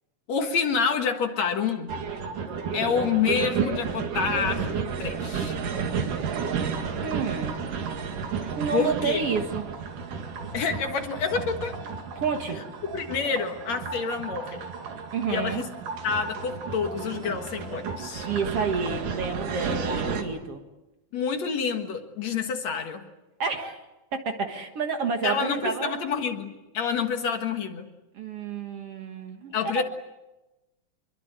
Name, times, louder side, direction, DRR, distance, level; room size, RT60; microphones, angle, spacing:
voice 1, 0.3-1.9 2.7-4.6 5.0-5.6 8.4-9.2 10.5-11.8 12.9-14.7 15.3-15.7 16.0-18.3 21.1-23.1 25.2-27.9 29.5-29.8, left 6 dB, 60° left, 6 dB, 2.6 m, -28 dB
sound 1, 1.9-20.2, right 5 dB, 75° right, 3.7 m, -32 dB
voice 2, 7.0-7.6 8.6-9.7 12.2-12.6 15.1-15.6 18.2-20.6 23.4-23.8 24.1-26.0 28.1-29.8, right 5 dB, 50° right, 5 dB, 2.3 m, -29 dB
25.5 x 23.0 x 8.1 m, 1.0 s
omnidirectional pair, 3.8 m